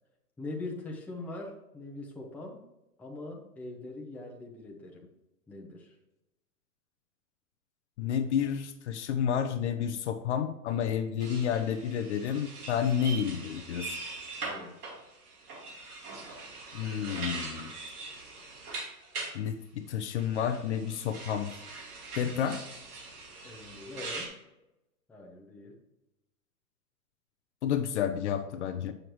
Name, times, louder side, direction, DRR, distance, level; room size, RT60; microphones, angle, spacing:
voice 1, 0.4-2.6 3.0-5.1 5.5-5.9 14.4-14.8 23.4-24.4 25.1-25.8, left 2 dB, 5° left, -1 dB, 0.6 m, -42 dB
voice 2, 8.0-14.0 16.7-17.7 19.3-21.5 22.2-22.6 27.6-28.9, left 8 dB, 45° left, 9 dB, 0.5 m, -30 dB
sound 1, 11.2-19.3 20.2-24.3, right 3 dB, 65° right, 2.4 m, -42 dB
7.6 x 6.4 x 3.1 m, 0.95 s
hypercardioid pair, 120°, 48 cm